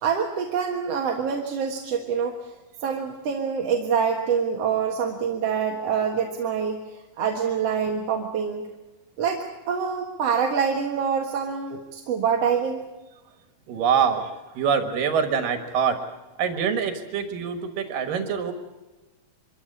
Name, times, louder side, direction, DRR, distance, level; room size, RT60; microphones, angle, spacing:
voice 1, 0.0-2.5 2.8-8.7 9.2-12.8, right 6 dB, 55° right, 2 dB, 2.4 m, -26 dB
voice 2, 13.7-16.0 16.4-18.5, right 7 dB, 90° right, 8 dB, 3.2 m, -24 dB
25.0 x 14.5 x 9.7 m, 1.1 s
omnidirectional pair, 3.8 m